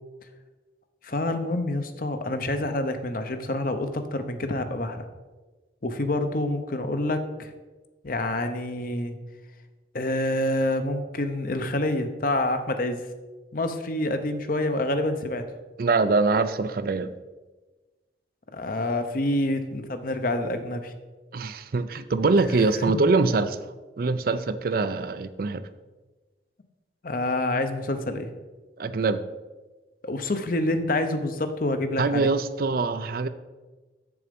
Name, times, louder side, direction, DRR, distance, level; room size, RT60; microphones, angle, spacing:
voice 1, 1.0-5.0 5.8-7.5 8.0-9.2 9.9-13.0 13.5-15.5 18.5-20.9 22.5-22.9 27.0-28.3 30.0-32.3, left 1 dB, 50° left, 8 dB, 0.8 m, -27 dB
voice 2, 15.8-17.1 21.3-23.6 24.0-25.7 28.8-29.2 32.0-33.3, right 3 dB, 55° right, 12 dB, 0.4 m, -24 dB
7.3 x 7.0 x 5.2 m, 1.2 s
head